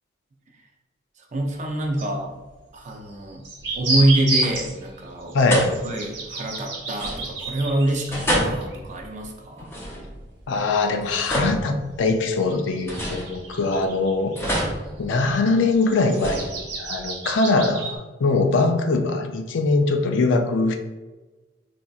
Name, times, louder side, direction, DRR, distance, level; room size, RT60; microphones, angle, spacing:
voice 1, 1.2-2.4 2.7-3.4 3.7-5.4 5.8-9.7, right 1 dB, 40° right, 1 dB, 0.5 m, -25 dB
sound 1, 1.6-1.7 1.9-2.0 3.1-9.2 9.6-9.7 10.1-10.2 11.6-11.7 12.2-14.6 15.1-18.0, right 2 dB, 70° right, 0.9 m, -31 dB
sound 2, 3.6-4.1 4.3-4.9 5.5-6.2 6.9-7.6 8.1-10.4 10.9-12.3 12.9-13.8 14.4-15.6 16.1-17.0, equal, 15° left, 0.6 m, -29 dB
voice 2, 5.3-5.7 10.5-14.3 15.0-16.5 16.8-20.8, left 3 dB, 75° left, 6 dB, 0.4 m, -22 dB
4.2 x 2.6 x 2.3 m, 1.2 s
head